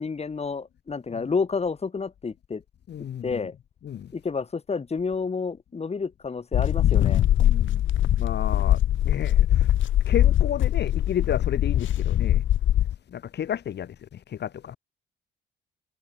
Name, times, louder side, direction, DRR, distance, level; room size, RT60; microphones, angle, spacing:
voice 1, 0.0-2.6 3.2-3.5 4.1-7.2, left 5 dB, 30° left, 3.6 m, -30 dB
voice 2, 2.9-3.2 3.9-4.1 7.4-7.8 8.2-8.8 9.1-9.7 10.1-12.4 13.1-13.9 14.3-14.8, left 9 dB, 60° left, 1.9 m, -31 dB
Wind and Walking - Pants Rustling, 6.5-13.0, left 12 dB, 75° left, 3.0 m, -22 dB
cardioid pair, 90°, 20 cm